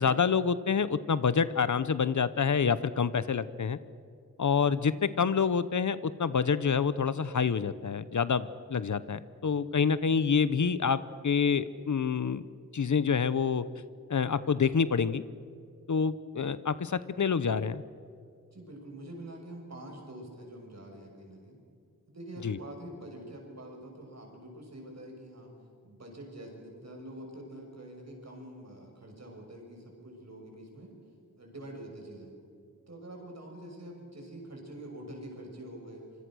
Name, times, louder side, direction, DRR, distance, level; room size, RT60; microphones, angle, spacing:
voice 1, 0.0-3.8 4.4-12.4 12.7-13.6 14.1-15.2 15.9-17.8 22.4-22.6, left 6 dB, 60° left, 15 dB, 0.9 m, -27 dB
voice 2, 18.5-21.6 22.1-25.5 25.8-30.9 31.4-32.3 32.9-36.0, right 1 dB, 50° right, 1 dB, 6.6 m, -45 dB
26.5 x 24.5 x 6.3 m, 2.3 s
wide cardioid pair, 105°, 33 cm